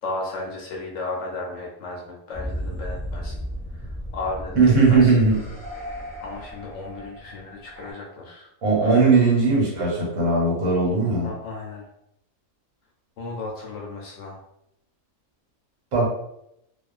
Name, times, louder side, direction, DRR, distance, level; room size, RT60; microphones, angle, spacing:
voice 1, 0.0-3.4 3.8-3.9 4.1-5.2 6.2-8.5 8.8-9.2 11.2-11.9 13.2-14.4, left 2 dB, 65° left, -2 dB, 0.8 m, -34 dB
sound 1, 2.3-7.9, equal, ahead, 1.0 m, -35 dB
voice 2, 4.6-5.4 8.6-11.3 15.9-16.1, right 4 dB, 75° right, -4 dB, 1.3 m, -18 dB
2.3 x 2.3 x 2.4 m, 0.77 s
omnidirectional pair, 1.5 m